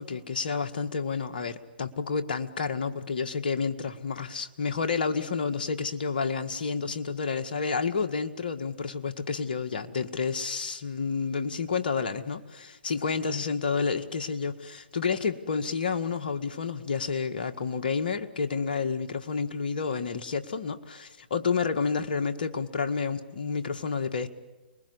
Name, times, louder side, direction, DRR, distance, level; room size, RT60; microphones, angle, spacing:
voice 1, 0.0-24.3, left 5 dB, 65° left, 7 dB, 1.9 m, -30 dB
29.0 x 21.0 x 9.8 m, 1.1 s
hypercardioid pair, 125°, 5 cm